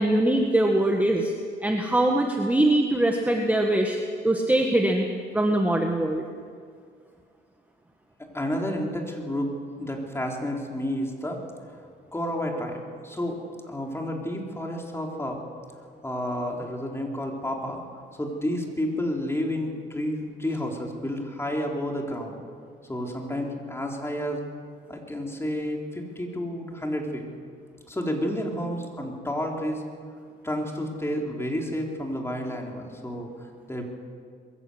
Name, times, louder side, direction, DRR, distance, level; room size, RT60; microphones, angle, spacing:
voice 1, 0.0-1.3 1.6-4.0 4.2-5.1 5.3-6.2, right 1 dB, 10° right, 2 dB, 1.6 m, -22 dB
voice 2, 8.3-9.5 9.8-11.4 12.1-13.4 13.7-15.4 16.0-17.8 18.2-22.4 22.9-24.4 24.9-27.2 27.9-29.8 30.4-33.8, equal, 15° left, 1 dB, 3.8 m, -30 dB
22.0 x 15.0 x 8.1 m, 2.1 s
cardioid pair, 90°, 20 cm